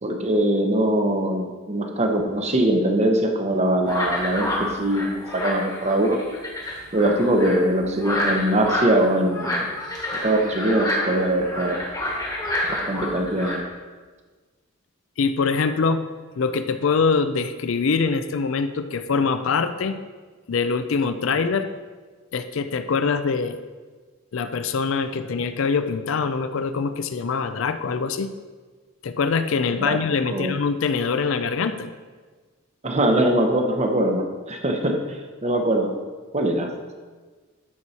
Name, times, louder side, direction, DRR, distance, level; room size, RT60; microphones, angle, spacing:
voice 1, 0.0-6.2 6.9-9.7 10.2-11.8 12.7-13.6 29.8-30.0 30.3-30.5 32.8-35.9 36.3-36.7, right 1 dB, 30° right, 3 dB, 0.9 m, -22 dB
sound 1, 3.9-13.6, left 1 dB, 20° left, 1.4 m, -28 dB
voice 2, 15.2-16.0 16.4-20.0 20.5-21.7 22.3-23.6 24.3-28.3 29.0-31.9, left 5 dB, 65° left, 10 dB, 0.4 m, -24 dB
12.0 x 4.7 x 4.2 m, 1.4 s
head